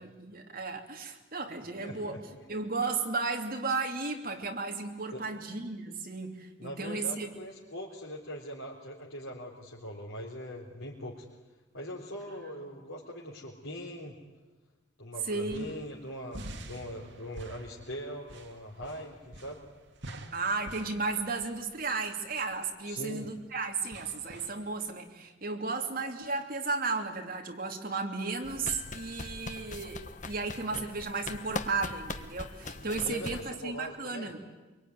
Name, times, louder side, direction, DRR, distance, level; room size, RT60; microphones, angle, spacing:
voice 1, 0.0-2.2 2.5-7.3 15.3-15.7 20.3-34.4, right 4 dB, 45° right, 2 dB, 3.2 m, -34 dB
voice 2, 1.6-2.4 5.1-5.2 6.6-11.2 11.7-14.2 15.0-19.6 22.8-23.3 33.0-34.3, equal, 90° left, -4 dB, 3.9 m, -41 dB
sound 1, 15.2-25.1, right 1 dB, 60° right, 2.4 m, -49 dB
sound 2, 28.4-33.4, left 3 dB, 40° left, 1.3 m, -41 dB
25.0 x 24.0 x 9.6 m, 1.2 s
head